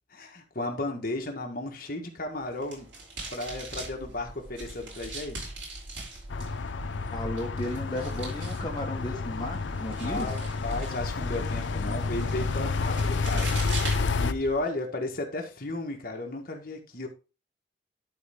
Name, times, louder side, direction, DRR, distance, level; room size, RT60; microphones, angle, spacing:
voice 1, 0.1-2.9 3.3-5.5 10.0-13.6 14.1-17.1, left 2 dB, 50° left, 1.5 m, -34 dB
sound 1, 2.4-14.7, right 3 dB, 85° right, 4.7 m, -43 dB
sound 2, 3.4-14.6, right 1 dB, 55° right, 1.0 m, -46 dB
sound 3, 6.3-14.3, left 4 dB, 80° left, 0.5 m, -30 dB
voice 2, 7.1-10.3, left 1 dB, 25° left, 1.2 m, -34 dB
11.5 x 4.3 x 3.6 m
head